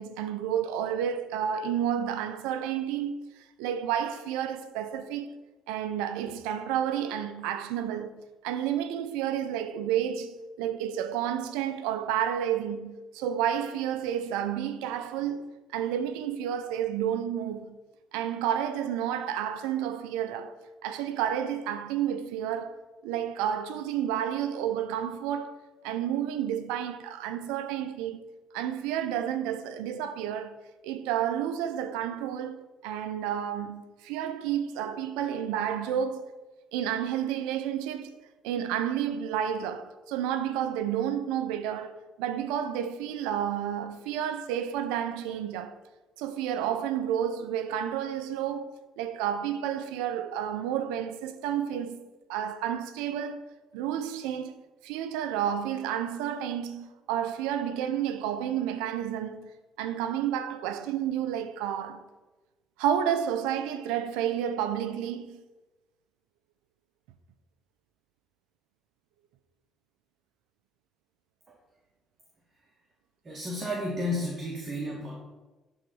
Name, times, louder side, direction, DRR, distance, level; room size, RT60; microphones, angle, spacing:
voice 1, 0.0-5.3 5.7-17.8 18.1-20.6 20.8-28.2 28.5-30.6 30.8-36.3 36.7-38.2 38.4-45.8 46.2-53.5 53.7-59.5 59.8-62.0 62.8-65.4, right 9 dB, 90° right, 0.7 m, -31 dB
voice 2, 73.2-75.2, left 1 dB, 40° right, 2.2 m, -32 dB
11.0 x 4.0 x 6.2 m
supercardioid pair, 70°, 0 cm